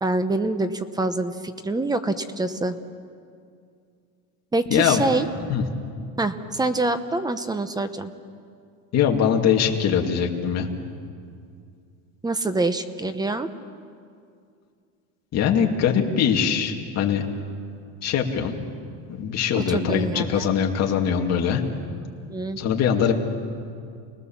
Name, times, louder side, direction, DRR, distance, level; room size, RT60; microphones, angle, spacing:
voice 1, 0.0-2.8 4.5-5.3 6.2-8.1 12.2-13.5 19.6-20.4 22.3-22.6, right 2 dB, 10° right, 11 dB, 0.9 m, -25 dB
voice 2, 4.7-5.0 5.5-5.6 8.9-10.7 15.3-17.3 18.0-18.6 19.1-21.6 22.6-23.1, left 8 dB, 40° left, 2 dB, 2.5 m, -22 dB
29.5 x 19.5 x 7.3 m, 2.3 s
cardioid pair, 150°, 40 cm